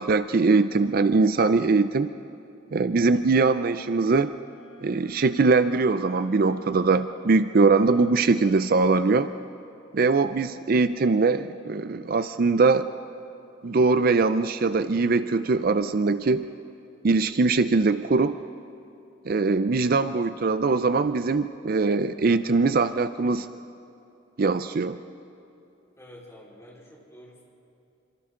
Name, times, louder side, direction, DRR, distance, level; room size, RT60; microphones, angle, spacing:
voice 1, 0.0-2.1 2.7-4.3 4.8-9.3 9.9-12.9 13.6-16.5 17.0-18.4 19.3-23.5 24.4-25.0, right 4 dB, 50° right, 12 dB, 0.4 m, -22 dB
Wind instrument woodwind instrument, 4.4-8.7, equal, 70° left, 5.4 m, -52 dB
voice 2, 26.0-27.4, equal, 15° left, -5 dB, 4.2 m, -48 dB
27.5 x 25.5 x 3.8 m, 2.8 s
head